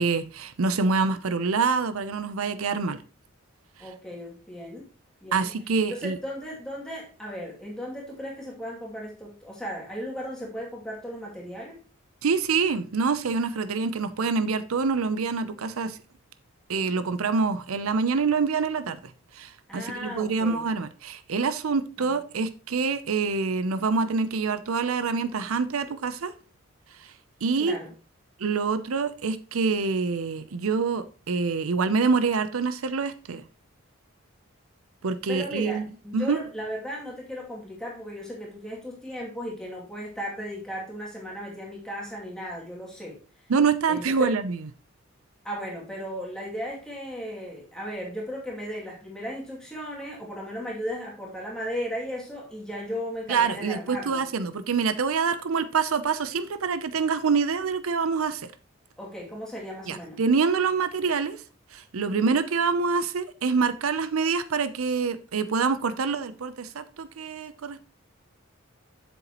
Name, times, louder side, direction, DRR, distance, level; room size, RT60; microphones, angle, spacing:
voice 1, 0.0-3.0 5.3-6.2 12.2-16.0 16.7-19.0 19.3-26.3 27.0-27.1 27.4-27.8 28.4-33.4 35.0-35.8 36.1-36.4 43.5-44.7 53.3-58.5 59.9-61.4 61.7-67.8, right 5 dB, 85° right, 0.6 m, -26 dB
voice 2, 3.8-4.9 5.2-5.5 5.9-11.8 19.7-20.6 22.0-22.2 27.6-27.9 35.3-43.2 43.9-44.3 45.4-54.2 59.0-60.2 62.1-62.4, equal, 5° left, 2.4 m, -36 dB
7.8 x 7.0 x 3.0 m
head